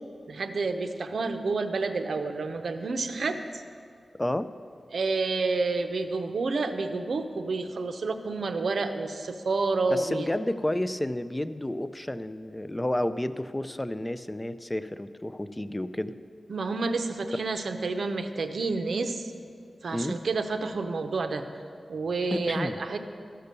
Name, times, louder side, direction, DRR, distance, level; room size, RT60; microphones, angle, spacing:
voice 1, 0.3-3.6 4.9-10.3 16.5-19.3 19.8-21.4 21.9-23.0, right 3 dB, 75° right, 8 dB, 0.7 m, -29 dB
voice 2, 4.2-4.5 9.9-16.1 19.9-20.2 22.3-22.8, left 1 dB, 15° left, 12 dB, 0.3 m, -31 dB
13.0 x 6.7 x 6.7 m, 2.3 s
wide cardioid pair, 105°, 0 cm